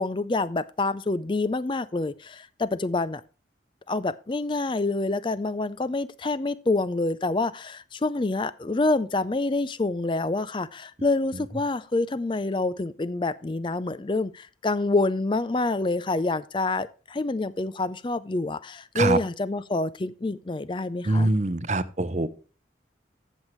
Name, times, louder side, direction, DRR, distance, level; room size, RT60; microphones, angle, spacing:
voice 1, 0.0-3.2 3.9-21.3, left 2 dB, 25° left, 0.4 m, -27 dB
voice 2, 21.0-22.3, right 2 dB, 40° right, 0.7 m, -24 dB
14.0 x 7.3 x 3.1 m
head